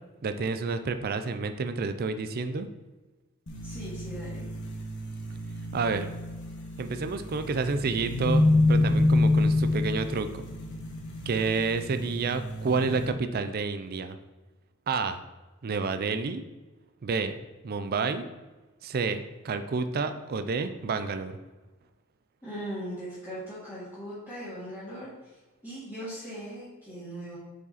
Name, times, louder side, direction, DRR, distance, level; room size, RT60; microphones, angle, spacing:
voice 1, 0.2-2.7 5.7-6.1 6.8-10.4 11.3-14.2 14.9-15.2 15.6-16.4 17.0-17.3 17.6-18.2 18.8-21.4, right 4 dB, 45° right, 9 dB, 0.4 m, -29 dB
sound 1, 3.5-13.1, left 2 dB, 55° left, 1.3 m, -28 dB
voice 2, 3.6-4.5 22.4-25.1 25.6-27.4, equal, 15° left, -13 dB, 2.2 m, -39 dB
7.0 x 5.0 x 4.1 m, 1.2 s
head